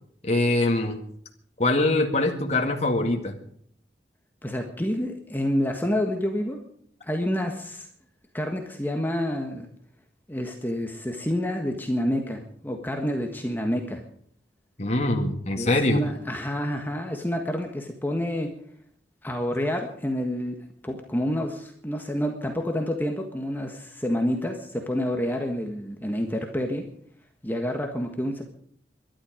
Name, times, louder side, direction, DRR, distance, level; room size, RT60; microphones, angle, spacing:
voice 1, 0.2-1.0 1.6-3.3 14.8-16.0, left 2 dB, 40° left, 2 dB, 2.0 m, -23 dB
voice 2, 4.4-6.6 7.0-7.9 8.3-9.7 10.3-14.0 15.5-18.5 19.2-20.6 20.8-26.9 27.4-28.4, equal, 10° left, 3 dB, 1.5 m, -28 dB
23.0 x 11.5 x 5.1 m, 0.64 s
head